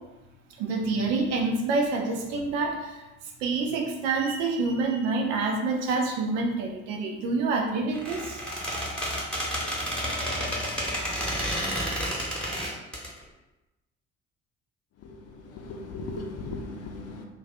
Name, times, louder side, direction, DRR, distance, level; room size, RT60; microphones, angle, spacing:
voice 1, 0.5-3.0 3.4-8.4, right 3 dB, 60° right, 1 dB, 0.7 m, -27 dB
Squeak, 7.9-13.1, equal, ahead, 1.1 m, -30 dB
voice 2, 14.9-17.2, left 3 dB, 40° left, 2 dB, 0.6 m, -38 dB
2.5 x 2.3 x 3.9 m, 1.0 s
figure-of-eight pair, 50°, 41 cm